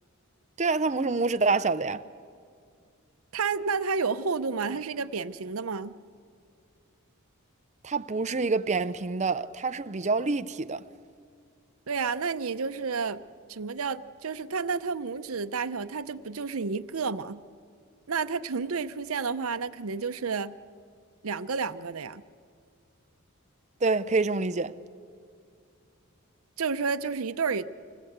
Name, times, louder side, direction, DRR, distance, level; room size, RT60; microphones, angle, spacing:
voice 1, 0.6-2.0 7.8-10.8 23.8-24.7, right 3 dB, 35° right, 0.6 m, -26 dB
voice 2, 3.3-6.0 11.9-13.2 13.5-17.4 18.1-20.6 21.2-22.2 26.6-27.6, right 5 dB, 75° right, 0.7 m, -30 dB
26.0 x 19.5 x 8.0 m
head